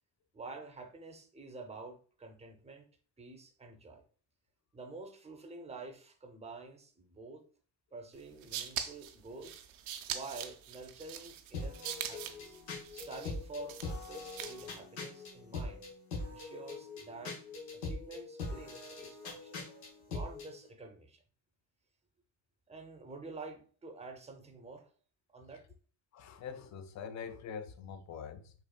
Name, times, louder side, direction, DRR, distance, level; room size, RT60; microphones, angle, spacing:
voice 1, 0.3-2.9 3.2-4.0 4.7-7.5 7.9-9.6 10.1-12.6 12.9-15.9 16.3-17.4 17.7-19.5 20.1-21.2 22.7-24.9 25.3-25.6, right 3 dB, 15° right, 0.6 m, -48 dB
sound 1, 8.2-14.8, right 10 dB, 75° right, 0.5 m, -43 dB
sound 2, 11.5-20.5, left 3 dB, 85° left, 1.0 m, -42 dB
voice 2, 26.1-28.5, left 6 dB, 40° left, 0.4 m, -44 dB
3.8 x 2.5 x 2.2 m
supercardioid pair, 60°, 49 cm